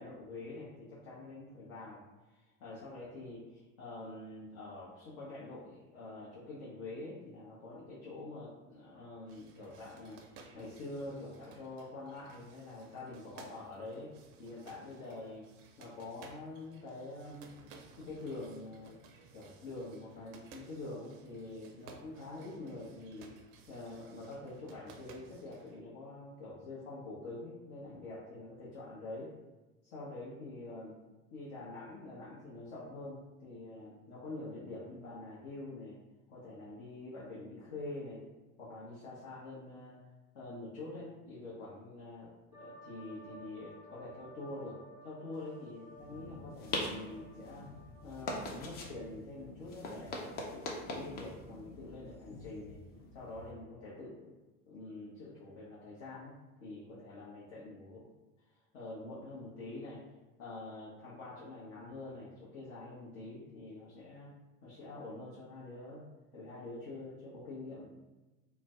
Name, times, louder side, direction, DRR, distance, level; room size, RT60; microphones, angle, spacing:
voice 1, 0.0-2.0 2.3-10.2 10.5-14.1 14.4-15.5 15.8-17.6 18.0-19.0 19.3-23.3 23.7-29.3 29.8-30.9 31.3-36.0 36.3-38.2 38.6-40.0 40.3-47.7 48.0-52.8 53.1-54.3 54.7-56.4 56.6-58.1 58.5-60.0 60.4-64.3 64.6-66.0 66.3-67.9, left 2 dB, 55° left, -8 dB, 0.8 m, -46 dB
sound 1, 9.3-25.8, right 5 dB, 45° right, 0.4 m, -58 dB
sound 2, 42.5-48.9, right 1 dB, 10° right, 0.7 m, -55 dB
sound 3, 46.0-53.5, left 2 dB, 25° left, 0.4 m, -43 dB
2.4 x 2.1 x 3.4 m, 1.1 s
figure-of-eight pair, 70°, 41 cm